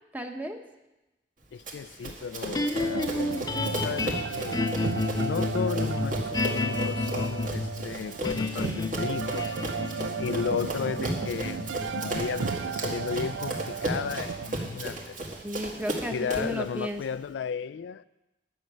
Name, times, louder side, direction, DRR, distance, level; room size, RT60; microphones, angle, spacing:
voice 1, 0.1-0.6 8.6-9.1 15.4-17.0, equal, 10° right, 0.9 m, -34 dB
voice 2, 1.5-3.1 3.7-9.5 10.2-15.2 16.1-18.0, left 6 dB, 80° left, 0.3 m, -34 dB
Run, 1.7-16.6, right 1 dB, 50° right, 2.0 m, -36 dB
sound 1, 2.5-14.8, left 3 dB, 20° left, 0.5 m, -32 dB
sound 2, 2.7-14.5, right 6 dB, 85° right, 0.4 m, -35 dB
11.0 x 6.5 x 8.6 m
head